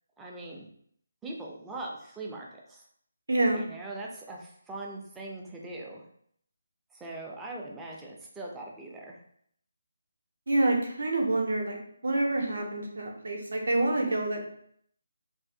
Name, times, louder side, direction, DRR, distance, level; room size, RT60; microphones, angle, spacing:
voice 1, 0.2-0.7 1.2-2.8 3.5-6.1 6.9-9.2 14.0-14.2, right 2 dB, 10° right, -2 dB, 0.3 m, -41 dB
voice 2, 3.3-3.6 10.5-11.8 12.0-14.5, right 2 dB, 60° right, 1 dB, 0.5 m, -27 dB
2.5 x 2.0 x 2.5 m, 0.66 s
figure-of-eight pair, 150°, 0 cm